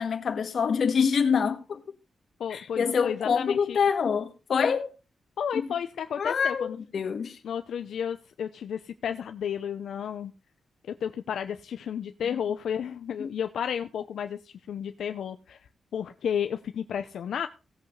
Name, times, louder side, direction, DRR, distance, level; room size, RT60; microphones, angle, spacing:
voice 1, 0.0-1.8 2.5-4.9 5.5-5.7 6.2-7.4 13.2-13.3, left 6 dB, 60° left, 1.6 m, -26 dB
voice 2, 2.4-3.8 5.4-6.8 7.4-10.3 11.0-17.5, left 8 dB, 85° left, 0.7 m, -32 dB
17.5 x 8.0 x 3.2 m
wide cardioid pair, 120°, 0 cm